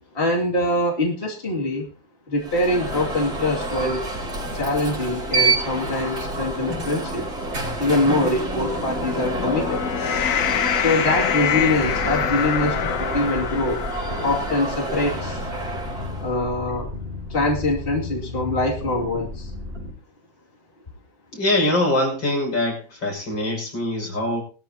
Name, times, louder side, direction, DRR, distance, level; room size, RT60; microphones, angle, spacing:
voice 1, 0.1-1.9 2.3-4.0 4.5-7.3 7.8-9.9 10.7-13.8 14.2-15.4 16.2-16.9 17.3-19.5, left 1 dB, 30° left, -2 dB, 2.7 m, -24 dB
Alarm, 2.4-16.3, right 2 dB, 55° right, 4.7 m, -28 dB
sound 1, 8.8-15.3, left 8 dB, 55° left, 1.0 m, -26 dB
sound 2, 11.5-19.9, left 2 dB, 25° right, 6.2 m, -34 dB
voice 2, 21.3-24.4, left 1 dB, 80° left, -1 dB, 6.8 m, -23 dB
20.0 x 13.0 x 2.9 m, 0.36 s
omnidirectional pair, 2.0 m